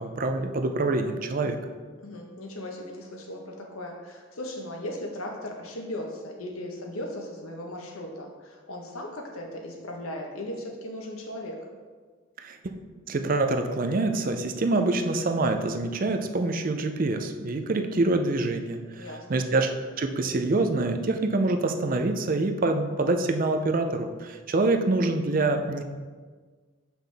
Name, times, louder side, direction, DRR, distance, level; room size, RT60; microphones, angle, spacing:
voice 1, 0.0-1.6 12.4-12.6 13.1-19.7 20.0-25.8, right 2 dB, 40° right, 6 dB, 0.5 m, -26 dB
voice 2, 2.0-11.6 19.0-19.2, left 1 dB, 90° left, 1 dB, 1.2 m, -37 dB
7.4 x 5.8 x 3.5 m, 1.5 s
head